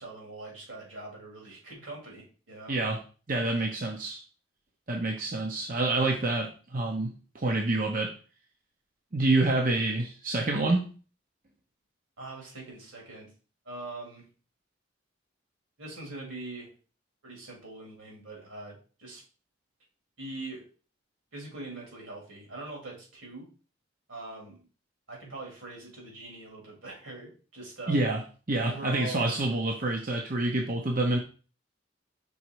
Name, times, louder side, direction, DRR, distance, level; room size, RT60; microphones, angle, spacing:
voice 1, 0.0-2.7 12.2-13.3 13.6-14.3 15.8-16.7 17.2-19.2 20.2-20.6 21.3-23.5 24.1-24.6 25.1-28.0 28.6-29.2, right 2 dB, 85° right, -1 dB, 3.2 m, -42 dB
voice 2, 3.3-4.2 4.9-8.1 9.1-10.9 27.9-28.2 28.5-31.2, right 2 dB, 45° right, 1 dB, 0.9 m, -27 dB
5.5 x 4.2 x 4.7 m, 0.37 s
head